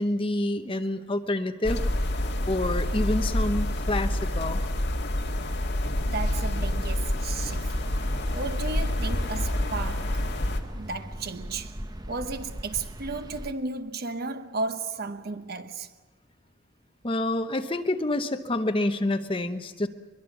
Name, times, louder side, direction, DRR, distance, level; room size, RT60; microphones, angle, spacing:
voice 1, 0.0-1.8 2.5-4.6 17.0-19.9, left 1 dB, 25° left, 0.9 m, -27 dB
sound 1, 1.6-10.6, left 1 dB, 55° left, 2.0 m, -27 dB
voice 2, 6.1-7.8 8.3-10.2 10.7-11.8 12.1-15.9, right 3 dB, 50° right, 0.9 m, -34 dB
sound 2, 7.4-13.5, right 1 dB, 20° right, 0.9 m, -40 dB
22.5 x 22.5 x 7.1 m
head